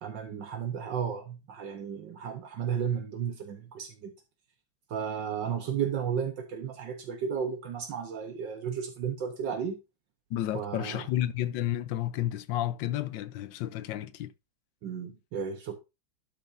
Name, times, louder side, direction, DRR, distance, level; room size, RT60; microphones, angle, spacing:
voice 1, 0.0-4.1 4.9-9.8 10.5-11.1 14.8-15.8, right 7 dB, 75° right, 1.8 m, -33 dB
voice 2, 10.3-14.3, left 13 dB, 75° left, 1.4 m, -31 dB
12.0 x 5.9 x 2.6 m
omnidirectional pair, 2.0 m